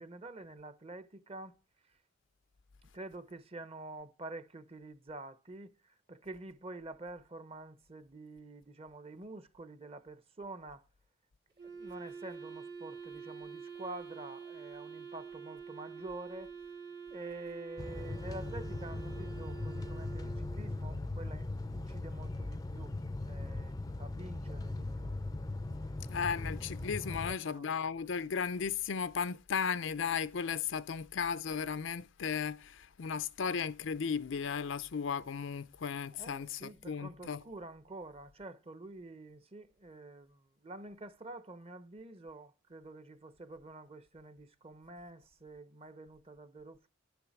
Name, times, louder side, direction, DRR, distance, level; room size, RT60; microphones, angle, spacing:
voice 1, 0.0-1.6 2.8-10.8 11.6-16.5 17.1-23.0 23.3-25.2 27.1-27.8 36.1-46.9, right 2 dB, 30° right, 0.9 m, -48 dB
Wind instrument woodwind instrument, 11.6-20.8, right 6 dB, 50° right, 1.1 m, -47 dB
sound 1, 17.8-27.3, left 2 dB, 20° left, 0.5 m, -39 dB
voice 2, 26.1-37.4, left 6 dB, 70° left, 0.5 m, -35 dB
10.5 x 6.9 x 5.9 m
head